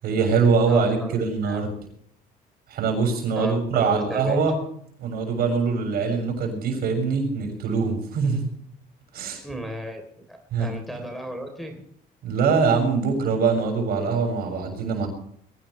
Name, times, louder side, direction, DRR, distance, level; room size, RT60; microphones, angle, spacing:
voice 1, 0.0-1.7 2.7-4.5 5.0-8.5 9.1-9.4 10.5-10.7 12.2-15.1, right 5 dB, 65° right, 4 dB, 7.1 m, -23 dB
voice 2, 0.7-1.1 1.4-1.7 3.3-4.4 9.4-10.0 10.3-11.9, right 1 dB, ahead, 3 dB, 3.5 m, -34 dB
22.5 x 17.5 x 3.3 m, 0.62 s
cardioid pair, 110°, 17 cm